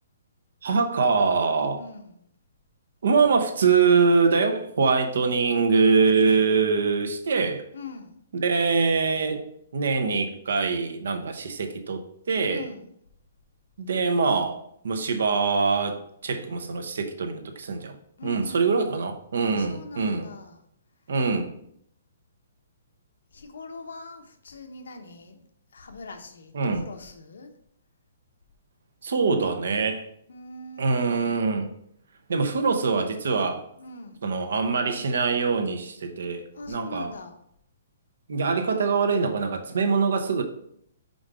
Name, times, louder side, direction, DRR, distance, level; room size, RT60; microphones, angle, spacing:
voice 1, 0.6-1.8 3.0-7.6 8.3-9.5 9.7-12.6 13.8-14.6 14.8-17.9 18.2-20.3 21.1-21.5 26.5-26.8 29.0-30.1 30.8-31.7 32.3-33.6 34.2-37.1 38.3-40.4, right 4 dB, 75° right, 6 dB, 0.9 m, -23 dB
voice 2, 1.8-2.2 7.7-8.2 12.5-12.9 18.2-19.0 19.4-20.6 23.3-25.4 25.7-27.5 30.3-31.5 33.7-34.2 36.5-37.3, left 3 dB, 85° left, 6 dB, 1.0 m, -42 dB
5.1 x 3.8 x 4.8 m, 0.72 s
hypercardioid pair, 165°, 0 cm